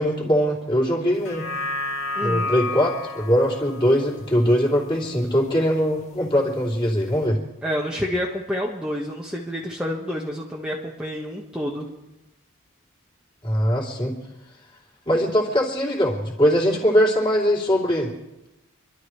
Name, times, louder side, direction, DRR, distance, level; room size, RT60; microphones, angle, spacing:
voice 1, 0.0-1.4 2.2-7.4 13.4-14.1 15.1-18.1, equal, 20° left, -3 dB, 3.4 m, -21 dB
sound 1, 1.1-5.7 6.1-6.2, left 2 dB, 70° left, 2.4 m, -32 dB
voice 2, 2.1-2.5 7.6-11.9, equal, 5° right, -4 dB, 1.5 m, -28 dB
28.0 x 12.5 x 3.3 m, 0.94 s
head